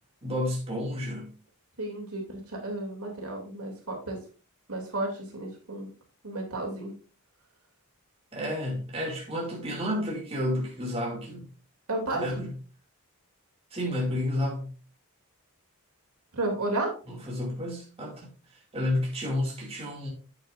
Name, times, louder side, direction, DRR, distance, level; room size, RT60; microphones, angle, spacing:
voice 1, 0.2-1.3 8.3-11.5 12.1-12.5 13.7-14.7 17.1-20.1, left 1 dB, 25° right, 2.4 m, -31 dB
voice 2, 1.8-4.2 4.7-5.9 6.2-6.9 11.9-12.2 16.3-16.9, right 2 dB, 80° right, 2.9 m, -32 dB
9.0 x 8.6 x 2.6 m
head